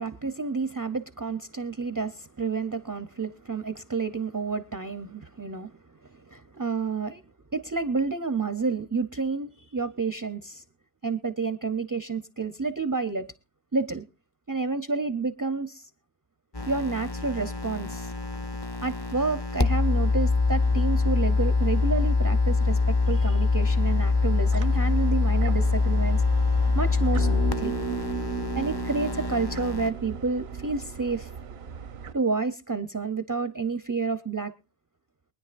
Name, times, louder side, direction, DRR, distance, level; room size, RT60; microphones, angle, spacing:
voice 1, 0.0-5.7 6.1-7.2 7.5-10.6 11.0-13.3 13.7-14.0 14.5-15.9 16.7-18.1 18.8-26.2 26.7-27.3 27.6-27.7 28.6-31.3 32.1-34.5, right 4 dB, 25° right, 12 dB, 0.5 m, -29 dB
sound 1, 16.5-29.9, left 3 dB, 30° left, 0.6 m, -24 dB
sound 2, 24.1-32.1, right 6 dB, 75° right, 1.0 m, -41 dB
sound 3, 27.1-31.7, right 4 dB, 65° left, 2.1 m, -35 dB
23.5 x 10.0 x 2.5 m, 0.28 s
omnidirectional pair, 1.1 m